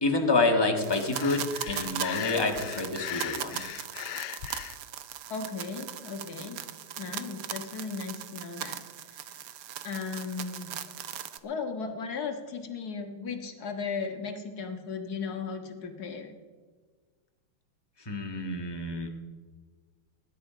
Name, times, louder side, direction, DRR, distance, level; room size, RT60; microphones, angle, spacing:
voice 1, 0.0-3.6 18.0-19.1, left 3 dB, 15° left, 3 dB, 1.3 m, -28 dB
sound 1, 0.8-11.4, right 10 dB, 70° right, 0.8 m, -39 dB
Breathing, 1.1-4.8, left 14 dB, 80° left, 1.4 m, -38 dB
voice 2, 5.3-6.6 7.0-9.4 9.8-10.7 11.4-16.3, left 5 dB, 50° left, 4 dB, 1.9 m, -36 dB
19.5 x 10.5 x 5.0 m, 1.5 s
omnidirectional pair, 2.4 m